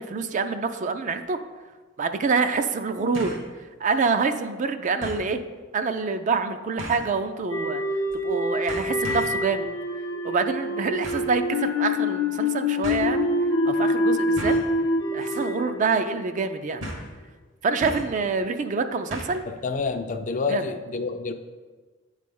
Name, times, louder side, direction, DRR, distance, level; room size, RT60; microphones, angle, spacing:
voice 1, 0.0-1.4 2.0-3.3 3.8-5.4 5.7-7.8 8.2-9.7 10.2-13.3 13.7-14.5 15.1-16.8 17.6-19.4 20.5-20.6, right 4 dB, 40° right, 8 dB, 0.4 m, -26 dB
sound 1, 1.2-1.3 3.1-3.5 3.9-4.0 5.0-5.3 6.8-7.1 8.1-8.3 8.7-9.4 11.0-11.3 12.3-12.4 12.8-13.0 14.4-14.7 15.2-15.5 15.7-15.8 16.8-17.1 17.8-18.2 19.1-19.5 19.8-19.9, equal, 75° right, 1.4 m, -36 dB
sound 2, 7.5-16.7, left 2 dB, 85° left, 0.6 m, -26 dB
voice 2, 19.5-21.3, left 4 dB, 40° left, 7 dB, 0.4 m, -28 dB
8.3 x 3.3 x 5.3 m, 1.4 s
head